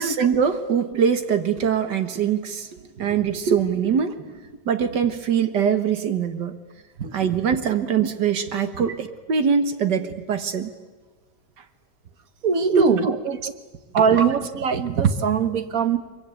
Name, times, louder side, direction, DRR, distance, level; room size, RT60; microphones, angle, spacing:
voice 1, 0.0-2.7 3.0-4.2 4.7-6.6 7.1-10.7 12.7-13.2 14.1-14.3, right 7 dB, 75° right, 9 dB, 1.9 m, -22 dB
voice 2, 12.4-13.4 13.9-16.0, right 6 dB, 55° right, 10 dB, 1.6 m, -21 dB
23.5 x 22.5 x 9.1 m, 1.3 s
omnidirectional pair, 1.9 m